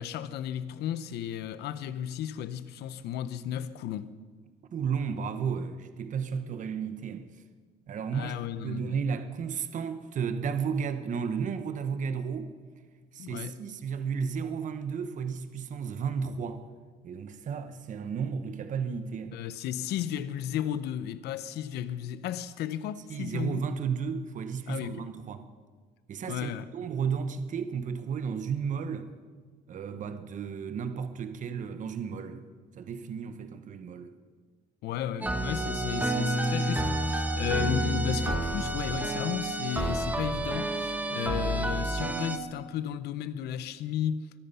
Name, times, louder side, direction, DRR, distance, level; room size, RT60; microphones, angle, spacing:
voice 1, 0.0-4.1 8.1-9.1 13.2-13.6 19.3-23.6 24.7-25.1 26.2-26.7 34.8-44.3, left 10 dB, 80° left, 0.8 m, -34 dB
voice 2, 4.7-7.3 7.9-8.4 8.6-12.5 13.1-16.6 17.0-19.4 23.1-25.5 26.1-29.1 29.7-32.4 32.7-34.1, right 6 dB, 50° right, 1.1 m, -33 dB
sound 1, 35.2-42.4, right 1 dB, 10° right, 1.2 m, -29 dB
23.5 x 9.4 x 5.7 m
cardioid pair, 110°, 17 cm